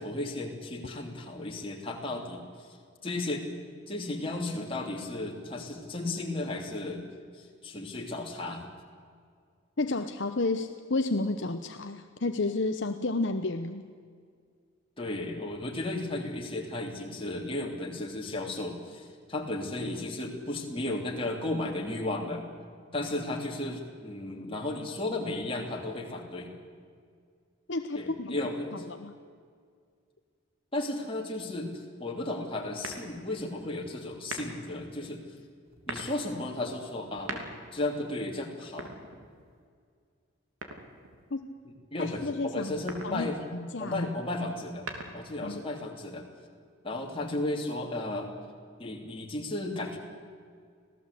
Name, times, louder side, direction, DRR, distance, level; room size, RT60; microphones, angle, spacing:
voice 1, 0.0-2.7 3.0-3.5 3.9-7.0 7.4-8.6 15.0-22.4 22.9-26.5 27.9-28.8 30.7-35.2 35.9-37.4 37.7-38.9 41.6-43.4 43.8-44.9 45.1-46.3 46.8-48.3 48.8-50.0, left 2 dB, 25° left, 0 dB, 3.2 m, -34 dB
voice 2, 9.8-13.8 27.7-28.4 28.7-29.1 41.3-41.5 42.0-42.7 43.0-44.1 45.4-45.6, left 2 dB, 60° left, 7 dB, 0.9 m, -31 dB
sound 1, 32.8-33.4 34.2-34.7 35.7-36.2 37.0-37.8 38.6-39.6 40.6-41.2 42.7-43.2 44.5-45.4, right 2 dB, 80° right, 3.1 m, -41 dB
26.0 x 17.0 x 8.4 m, 2.1 s
head